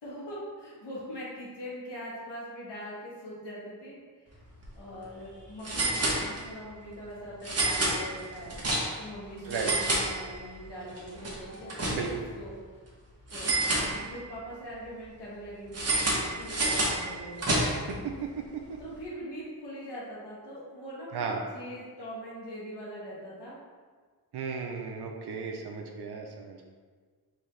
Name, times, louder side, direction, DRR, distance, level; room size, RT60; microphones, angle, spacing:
voice 1, 0.0-4.0 4.7-12.5 13.3-17.8 18.8-23.6, equal, 85° left, -7 dB, 1.3 m, -42 dB
sound 1, 4.5-4.7 4.9-5.0 5.6-6.7 7.4-9.1 9.4-10.6 11.0-12.3 13.3-14.4 15.7-18.0, right 2 dB, 40° right, 0.8 m, -29 dB
voice 2, 11.9-12.3 17.9-18.8 21.1-21.4 24.3-26.6, right 5 dB, 75° right, 2 dB, 0.5 m, -35 dB
3.8 x 2.7 x 3.2 m, 1.5 s
wide cardioid pair, 140°, 40 cm